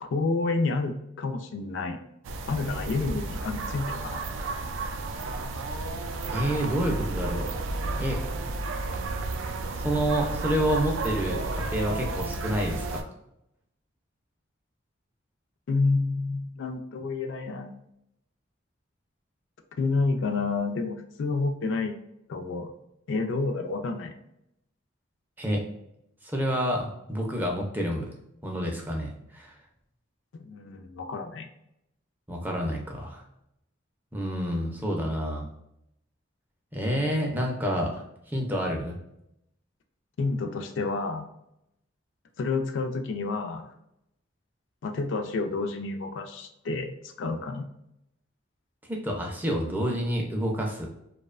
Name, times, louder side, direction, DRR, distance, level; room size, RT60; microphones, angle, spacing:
voice 1, 0.0-2.0 2.5-4.2 15.7-17.8 19.8-22.0 22.3-22.7 23.1-24.1 30.3-31.5 40.2-41.3 42.4-43.7 44.8-47.7, left 3 dB, 75° left, 6 dB, 0.3 m, -29 dB
sound 1, 2.2-13.0, right 2 dB, 90° right, 0.3 m, -32 dB
voice 2, 6.3-7.5 7.9-8.3 9.8-13.1 25.4-25.6 26.2-28.1 28.4-29.5 32.3-33.2 34.1-35.5 36.7-38.9 48.9-50.9, equal, 10° right, 0 dB, 0.4 m, -28 dB
2.6 x 2.1 x 2.3 m, 0.80 s
head